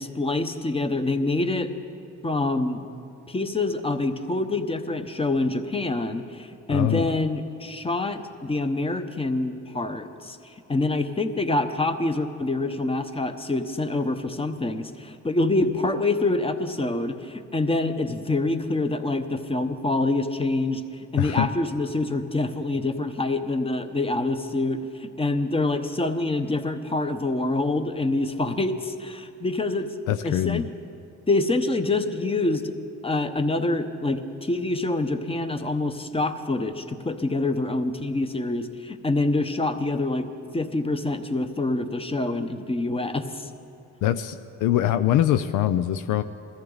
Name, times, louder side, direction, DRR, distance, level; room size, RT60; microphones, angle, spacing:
voice 1, 0.0-1.7 2.2-2.9 3.3-29.9 30.2-30.7 31.3-32.7 33.0-40.3 40.5-43.5, left 2 dB, 20° left, 8 dB, 0.9 m, -26 dB
voice 2, 6.7-7.1 21.2-21.5 30.1-30.7 44.0-46.2, left 12 dB, 85° left, 10 dB, 0.5 m, -23 dB
20.5 x 14.0 x 4.0 m, 2.5 s
cardioid pair, 90°, 30 cm